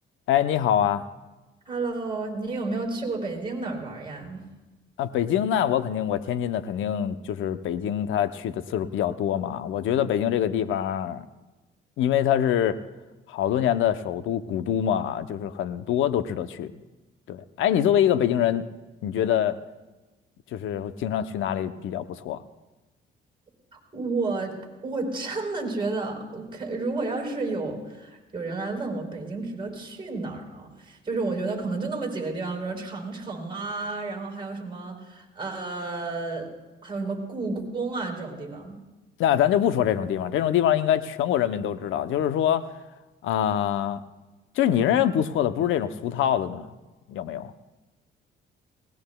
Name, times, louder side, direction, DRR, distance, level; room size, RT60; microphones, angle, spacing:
voice 1, 0.3-1.0 5.0-11.3 12.0-12.8 13.3-16.7 17.3-18.7 19.0-19.6 20.5-22.4 39.2-42.7 43.2-44.0 44.6-46.7 47.1-47.5, left 10 dB, 80° left, 12 dB, 0.7 m, -24 dB
voice 2, 1.7-4.4 23.7-24.5 24.8-36.5 36.8-38.8, right 3 dB, 25° right, -1 dB, 4.2 m, -31 dB
20.0 x 18.0 x 2.3 m, 1.1 s
cardioid pair, 90°, 20 cm